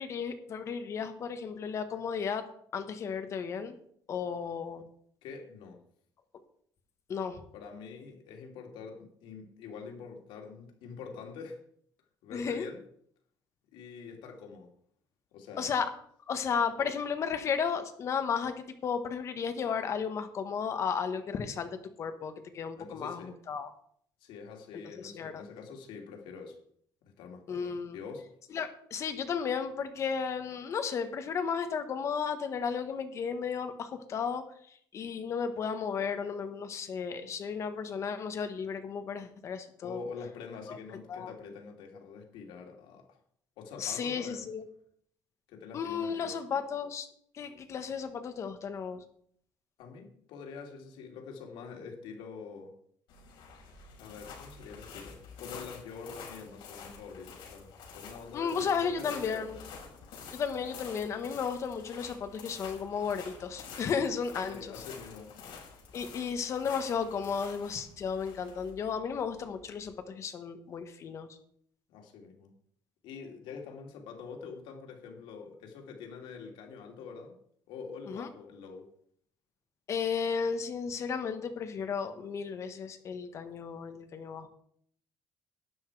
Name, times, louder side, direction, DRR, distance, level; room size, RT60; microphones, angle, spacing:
voice 1, 0.0-2.4 2.7-3.7 4.1-4.8 7.1-7.4 12.3-12.7 15.6-15.9 16.3-23.7 25.0-25.4 27.5-28.0 28.5-34.4 34.9-40.0 40.7-40.8 41.1-41.3 43.8-44.6 45.7-47.1 47.3-49.0 58.3-59.6 60.3-64.7 65.9-71.3 78.1-78.3 79.9-84.5, left 6 dB, 35° left, 8 dB, 1.3 m, -34 dB
voice 2, 5.2-5.8 7.5-11.6 12.2-12.8 13.7-14.7 15.3-15.7 16.8-16.9 22.8-23.4 24.2-26.6 27.1-28.3 39.8-43.2 43.6-44.5 45.5-46.4 49.8-52.7 54.0-59.6 64.5-65.3 71.9-72.5 73.0-77.3 77.7-78.9, left 5 dB, 85° left, 2 dB, 2.9 m, -45 dB
sound 1, 53.1-70.0, left 6 dB, 70° left, 5.6 m, -49 dB
12.0 x 9.8 x 4.8 m, 0.64 s
cardioid pair, 180°, 8 cm